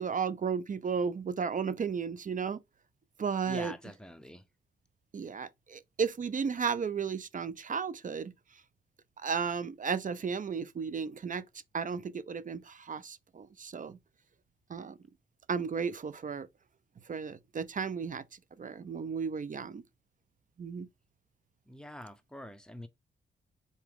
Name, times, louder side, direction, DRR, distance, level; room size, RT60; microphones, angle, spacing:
voice 1, 0.0-2.6 3.2-3.7 5.1-8.3 9.2-11.5 11.7-14.0 14.7-15.0 15.5-16.5 17.1-18.2 18.6-19.8 20.6-20.9, right 6 dB, 40° right, 0.5 m, -34 dB
voice 2, 3.5-4.4 21.7-22.9, left 1 dB, 5° left, 0.8 m, -45 dB
3.9 x 3.0 x 3.5 m
cardioid pair, 50°, 20 cm